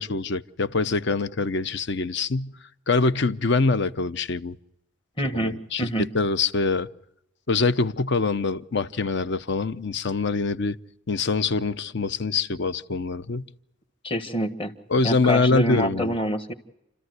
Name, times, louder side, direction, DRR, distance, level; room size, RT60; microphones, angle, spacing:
voice 1, 0.0-2.6 2.9-4.6 5.3-6.9 7.5-10.8 11.1-13.5 14.9-16.1, left 3 dB, 60° left, 0.7 m, -24 dB
voice 2, 5.2-6.1 14.0-14.7 15.0-16.5, equal, 25° left, 1.4 m, -27 dB
29.0 x 13.5 x 8.0 m
head